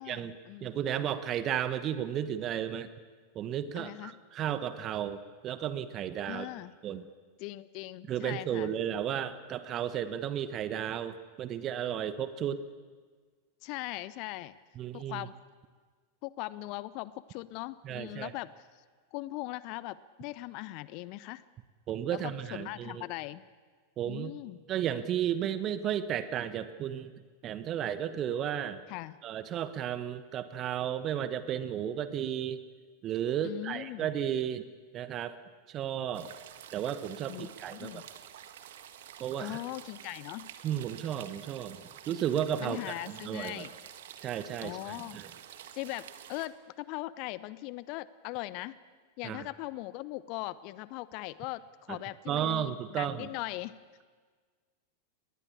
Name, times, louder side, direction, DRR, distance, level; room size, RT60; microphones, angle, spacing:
voice 1, 0.0-1.0 3.8-4.2 6.3-6.7 7.4-8.7 13.6-14.6 14.9-15.3 16.2-18.8 19.1-21.4 22.1-23.4 24.0-24.6 28.9-29.2 33.4-34.1 37.3-38.0 39.4-40.5 42.6-43.7 44.6-45.2 45.7-48.8 49.2-53.7, left 18 dB, 45° left, 18 dB, 0.6 m, -40 dB
voice 2, 0.6-2.9 3.3-6.5 6.8-7.0 8.1-12.6 14.8-15.3 17.8-18.3 21.9-23.1 24.0-24.3 24.7-27.1 27.4-28.8 29.2-32.6 33.0-34.7 34.9-35.4 35.7-36.3 36.7-38.0 39.2-39.6 40.6-43.7 44.2-45.3 49.2-49.4 51.9-52.0 52.3-53.3, right 10 dB, 30° right, 13 dB, 1.2 m, -33 dB
sound 1, 36.1-46.5, right 10 dB, 55° right, 1.5 m, -49 dB
21.0 x 19.5 x 8.6 m, 1.5 s
figure-of-eight pair, 90°, 0 cm